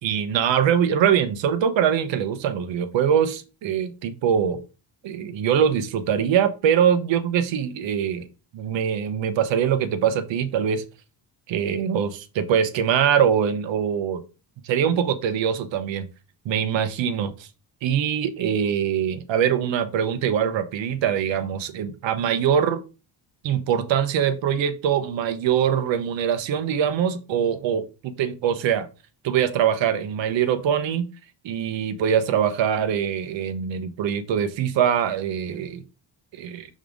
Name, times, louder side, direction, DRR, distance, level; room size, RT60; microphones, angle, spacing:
voice 1, 0.0-4.6 5.0-8.3 8.5-10.8 11.5-14.2 14.6-16.1 16.4-17.5 17.8-22.8 23.4-28.9 29.2-31.1 31.4-35.8 36.3-36.7, right 8 dB, 80° right, 0.9 m, -23 dB
5.5 x 3.7 x 5.0 m
cardioid pair, 175°, 44 cm